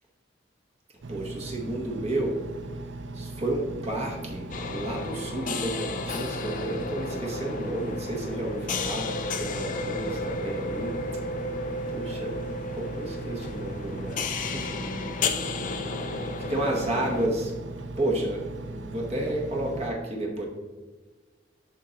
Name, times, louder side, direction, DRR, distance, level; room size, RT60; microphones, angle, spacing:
Engine, 1.0-19.9, right 2 dB, 75° right, 0.6 m, -38 dB
voice 1, 1.1-2.4 3.1-11.0 11.9-12.4 12.7-14.7 16.1-17.5 18.0-20.5, right 1 dB, 35° right, 0 dB, 1.0 m, -31 dB
sound 1, 4.5-17.3, left 3 dB, 45° left, 0.5 m, -33 dB
11.0 x 3.8 x 2.8 m, 1.3 s
head